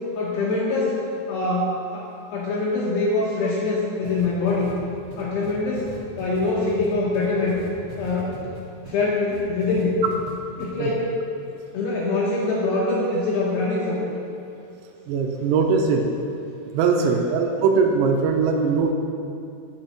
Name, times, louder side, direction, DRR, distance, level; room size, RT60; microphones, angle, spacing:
voice 1, 0.2-1.0 1.3-4.7 5.2-7.6 8.0-8.4 8.9-9.9 10.6-11.1 11.7-14.1 17.0-17.3, left 3 dB, 75° left, -5 dB, 2.6 m, -24 dB
sound 1, 4.0-9.0 9.3-10.3 10.6-10.7, right 4 dB, 60° right, 2.4 m, -40 dB
voice 2, 15.1-16.1 16.7-18.9, right 5 dB, 85° right, 3 dB, 3.3 m, -20 dB
8.9 x 7.3 x 5.6 m, 2.5 s
omnidirectional pair, 5.9 m